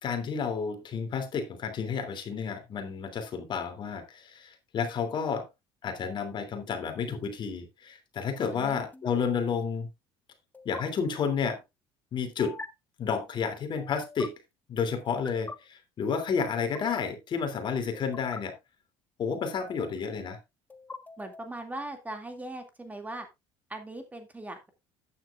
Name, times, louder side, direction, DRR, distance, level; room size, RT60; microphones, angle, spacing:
voice 1, 0.0-5.5 5.8-9.9 10.6-11.6 12.1-12.6 13.0-14.3 14.7-18.5 19.2-20.4, left 6 dB, 45° left, 7 dB, 3.0 m, -31 dB
sound 1, 6.9-7.2 8.9-9.2 10.5-10.8 12.4-12.7 13.8-14.3 15.0-15.5 16.5-17.0 17.9-18.4 19.4-20.0 20.7-21.6, left 3 dB, 15° left, 1.5 m, -44 dB
voice 2, 21.2-23.3 23.7-24.7, right 2 dB, 15° right, 5 dB, 2.4 m, -39 dB
12.0 x 9.8 x 2.5 m, 0.22 s
cardioid pair, 105°, 11 cm